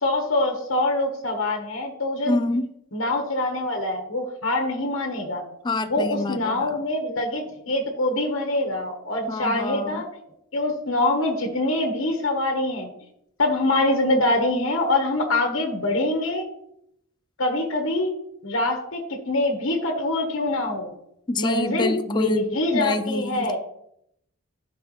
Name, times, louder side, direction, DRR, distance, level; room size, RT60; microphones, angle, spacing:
voice 1, 0.0-2.4 2.9-5.4 5.9-10.1 10.5-12.9 13.4-16.4 17.4-18.1 18.4-19.0 19.3-20.9 21.4-23.6, left 2 dB, 70° left, 3 dB, 1.3 m, -24 dB
voice 2, 2.3-2.7 5.6-6.8 9.3-10.0 21.3-23.6, left 2 dB, 20° left, 10 dB, 0.3 m, -27 dB
11.5 x 4.7 x 3.2 m, 0.75 s
head